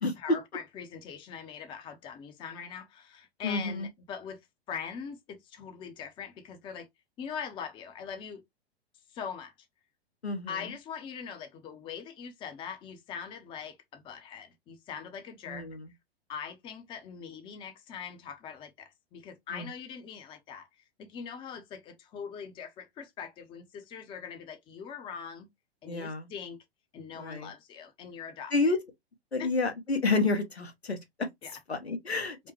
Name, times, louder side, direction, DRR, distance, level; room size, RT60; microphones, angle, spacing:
voice 1, 0.2-4.4 4.7-6.9 7.2-8.4 9.1-9.7 10.5-15.7 16.3-25.5 25.8-26.6 26.9-28.8 29.4-29.5 31.4-31.5 32.4-32.5, left 7 dB, 15° left, 0.6 m, -42 dB
voice 2, 3.4-3.9 10.2-10.7 15.5-15.9 19.5-19.7 25.8-26.3 27.1-27.5 28.5-28.8 29.3-31.3 31.7-32.5, left 3 dB, 80° left, 1.1 m, -30 dB
5.0 x 2.1 x 3.0 m
figure-of-eight pair, 105°, 32 cm